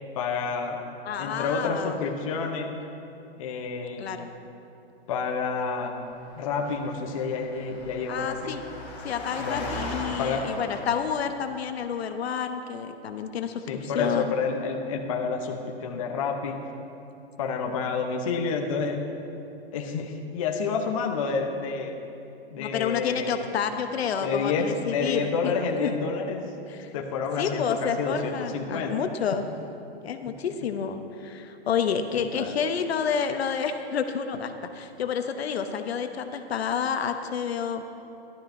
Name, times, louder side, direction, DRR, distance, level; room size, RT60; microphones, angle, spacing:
voice 1, 0.1-0.8 1.2-2.8 3.4-4.1 5.1-6.0 6.4-8.6 9.4-9.8 10.2-10.5 13.7-16.6 17.4-19.0 19.7-22.0 22.5-23.4 24.2-26.5 26.9-29.0 30.3-30.4 32.2-32.6, left 5 dB, 30° left, 2 dB, 0.7 m, -29 dB
voice 2, 1.0-2.0 4.0-4.3 8.1-8.6 9.0-14.3 22.6-26.0 26.7-26.9 27.4-29.4 30.0-37.8, left 7 dB, 75° left, 7 dB, 0.8 m, -29 dB
Engine, 6.1-11.7, left 2 dB, 15° left, 1.3 m, -39 dB
14.0 x 12.0 x 2.6 m, 2.8 s
hypercardioid pair, 170°, 32 cm